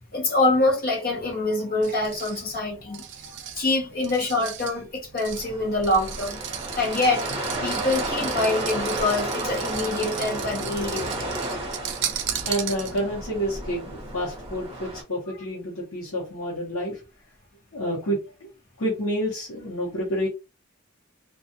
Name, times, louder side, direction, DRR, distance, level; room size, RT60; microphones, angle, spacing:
voice 1, 0.1-6.4 6.8-7.3 7.6-11.4, left 2 dB, 45° left, 0.8 m, -25 dB
sound 1, 1.8-13.2, right 10 dB, 55° right, 0.4 m, -36 dB
sound 2, 5.3-15.0, right 1 dB, 25° right, 0.9 m, -32 dB
voice 2, 12.4-17.0 17.7-18.2 18.8-20.3, equal, 70° left, 0.9 m, -29 dB
2.4 x 2.3 x 2.7 m
head